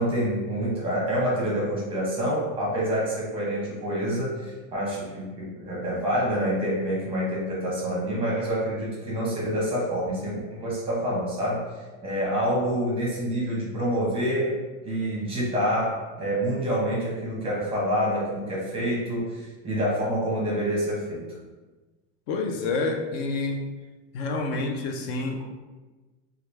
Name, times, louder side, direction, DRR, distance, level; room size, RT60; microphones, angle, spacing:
voice 1, 0.0-11.6 12.0-14.5 14.8-21.3, equal, 15° right, -5 dB, 0.8 m, -27 dB
voice 2, 22.3-23.6 24.1-25.4, left 3 dB, 55° left, 4 dB, 0.5 m, -28 dB
3.0 x 2.3 x 3.3 m, 1.2 s
supercardioid pair, 155°, 38 cm